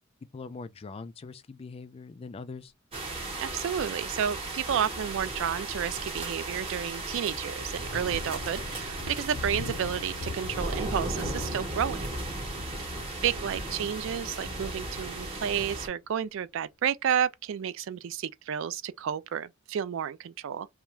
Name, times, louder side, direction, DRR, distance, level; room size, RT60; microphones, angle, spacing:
voice 1, 0.3-2.7 12.7-13.2, left 4 dB, 30° left, 0.3 m, -43 dB
sound 1, 2.9-15.9, right 2 dB, 30° right, 0.8 m, -36 dB
voice 2, 3.4-12.1 13.2-20.7, right 8 dB, 65° right, 0.3 m, -31 dB
Thunder, 6.9-16.1, left 3 dB, 80° left, 0.6 m, -44 dB
2.3 x 2.2 x 2.9 m
head